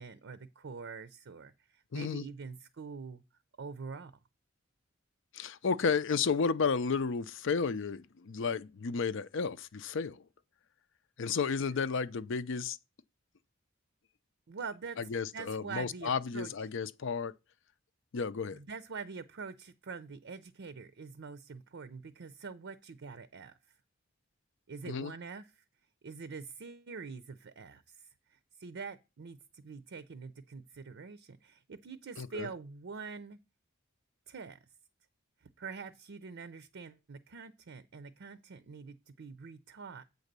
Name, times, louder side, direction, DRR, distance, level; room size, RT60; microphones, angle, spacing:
voice 1, 0.0-3.2 3.6-4.1 14.5-16.5 18.5-23.5 24.7-25.6 26.0-33.4 34.3-34.6 35.4-40.0, right 5 dB, 65° right, 0.5 m, -45 dB
voice 2, 1.9-2.2 5.3-10.2 11.2-12.8 15.1-17.3 18.1-18.6 24.9-25.1 32.2-32.5, left 5 dB, 65° left, 0.5 m, -32 dB
8.2 x 4.0 x 6.7 m
head